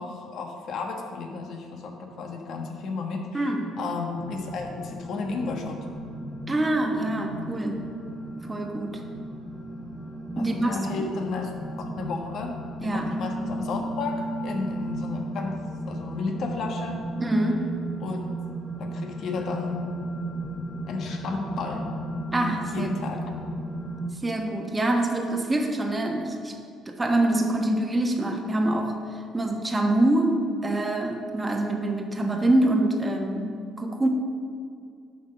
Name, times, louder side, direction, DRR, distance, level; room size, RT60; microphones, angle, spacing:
voice 1, 0.0-3.5 3.8-5.8 10.4-11.5 11.8-15.6 15.9-17.0 18.0-18.2 18.8-19.8 20.9-21.9 22.7-23.3, left 4 dB, 65° left, 2 dB, 1.4 m, -33 dB
voice 2, 3.3-3.8 6.5-7.9 8.5-9.0 10.4-11.1 12.8-13.1 17.2-17.8 22.3-22.9 24.2-26.5 26.9-34.1, right 1 dB, 20° right, 2 dB, 1.3 m, -25 dB
sound 1, 4.2-24.1, right 1 dB, 5° left, 1.2 m, -35 dB
11.0 x 3.9 x 6.7 m, 2.3 s
supercardioid pair, 75°, 0 cm